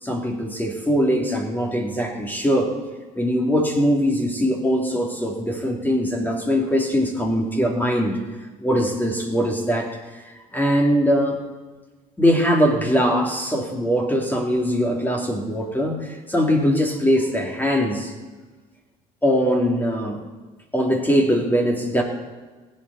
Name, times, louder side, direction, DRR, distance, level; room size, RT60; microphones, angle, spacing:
voice 1, 0.0-2.8 3.2-8.2 8.6-11.4 12.2-18.1 19.2-20.2 20.7-22.0, equal, 10° left, 1 dB, 2.6 m, -21 dB
22.5 x 8.7 x 4.1 m, 1.3 s
hypercardioid pair, 65°, 18 cm